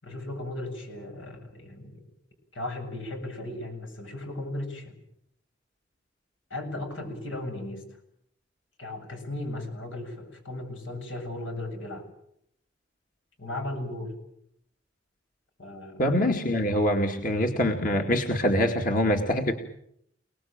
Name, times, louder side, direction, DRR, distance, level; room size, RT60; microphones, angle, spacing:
voice 1, 0.0-1.9 2.5-5.0 6.5-7.8 8.8-12.1 13.4-14.1 15.6-16.2, left 1 dB, 85° left, 5 dB, 7.8 m, -36 dB
voice 2, 16.0-19.5, left 1 dB, 45° left, 3 dB, 2.2 m, -24 dB
29.5 x 19.5 x 8.9 m, 0.75 s
head